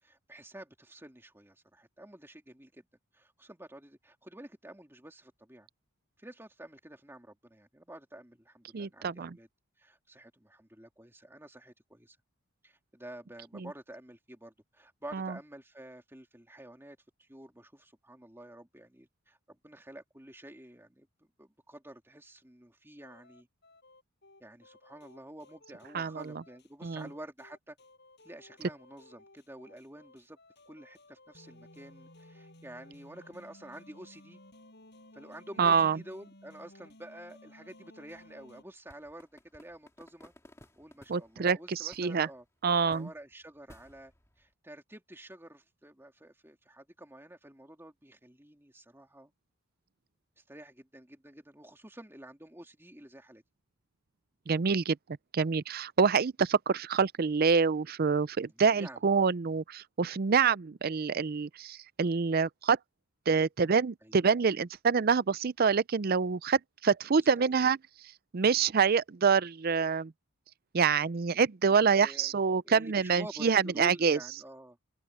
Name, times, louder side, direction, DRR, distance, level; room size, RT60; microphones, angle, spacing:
voice 1, 0.0-2.8 3.1-5.7 6.2-9.5 9.8-12.2 12.6-23.5 24.4-27.8 28.2-30.4 30.7-34.4 35.1-40.3 40.6-42.4 42.8-44.1 44.4-49.3 50.4-53.4 58.4-59.0 60.3-60.4 64.0-64.2 67.4-67.6 71.7-72.3 72.6-74.8, right 1 dB, 10° right, 2.8 m, -49 dB
voice 2, 8.7-9.3 13.5-13.7 15.1-15.3 25.9-26.4 26.8-27.1 35.6-36.0 41.1-42.3 42.6-43.1 54.5-55.0 55.3-62.8 63.3-67.8 68.3-70.1 70.7-74.2, right 5 dB, 45° right, 0.5 m, -26 dB
sound 1, 23.0-38.6, left 1 dB, 50° left, 7.8 m, -57 dB
sound 2, 38.1-41.5 41.9-42.4 42.7-44.5, left 1 dB, 15° left, 2.4 m, -58 dB
head